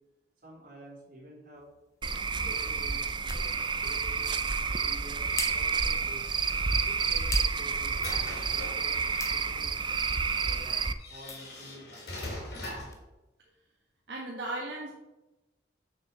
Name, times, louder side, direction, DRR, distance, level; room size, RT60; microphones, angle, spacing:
voice 1, 0.4-1.7 2.3-4.3 4.7-6.2 6.9-9.0 9.3-9.8 10.4-12.1, right 1 dB, 50° right, -5 dB, 3.8 m, -50 dB
sound 1, 1.5-13.1, left 4 dB, 15° left, 1.0 m, -47 dB
Cricket / Frog, 2.0-10.9, right 5 dB, 25° right, 0.4 m, -29 dB
sound 2, 7.0-9.4 10.3-10.4 11.0-13.0, left 1 dB, 60° left, 3.7 m, -41 dB
voice 2, 14.1-14.9, right 2 dB, 75° right, -3 dB, 1.7 m, -36 dB
7.0 x 6.6 x 6.7 m, 1.0 s
head